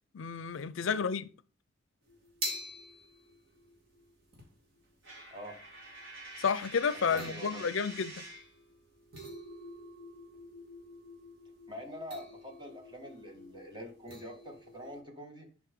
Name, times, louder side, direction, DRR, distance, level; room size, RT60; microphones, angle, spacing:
voice 1, 0.1-1.3 6.4-8.1, left 6 dB, 75° left, 0.5 m, -31 dB
sound 1, 2.0-15.0, right 1 dB, 50° right, 2.3 m, -47 dB
Coin (dropping), 5.0-8.6, right 2 dB, 75° right, 3.4 m, -47 dB
voice 2, 6.9-7.7 11.7-15.5, equal, 25° right, 1.8 m, -45 dB
11.0 x 5.2 x 3.6 m
head